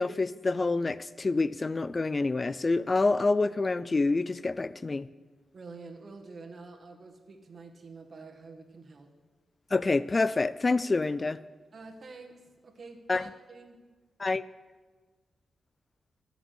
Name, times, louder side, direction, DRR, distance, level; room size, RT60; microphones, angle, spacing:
voice 1, 0.0-5.1 9.7-11.4 13.1-13.2 14.2-14.4, left 3 dB, 30° left, 17 dB, 0.3 m, -27 dB
voice 2, 5.5-9.1 11.7-13.8, right 3 dB, 50° right, 4 dB, 1.7 m, -47 dB
13.5 x 6.1 x 8.5 m, 1.3 s
cardioid pair, 90°, 0 cm